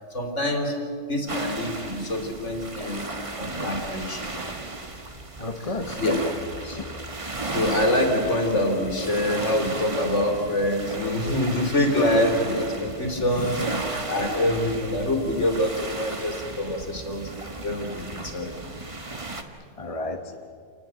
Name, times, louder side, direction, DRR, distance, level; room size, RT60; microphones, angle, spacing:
voice 1, 0.1-0.8 1.1-3.0 3.3-4.3 6.0-6.2 6.6-6.8 7.5-13.6 13.9-17.3 17.6-18.5, left 1 dB, 40° left, 3 dB, 3.5 m, -25 dB
sound 1, 1.3-19.4, right 2 dB, 20° right, 1.3 m, -35 dB
voice 2, 5.4-6.0 6.7-6.8 13.2-13.7 19.8-20.5, left 2 dB, 25° left, 5 dB, 0.9 m, -33 dB
27.5 x 19.5 x 7.6 m, 2.3 s
omnidirectional pair, 1.9 m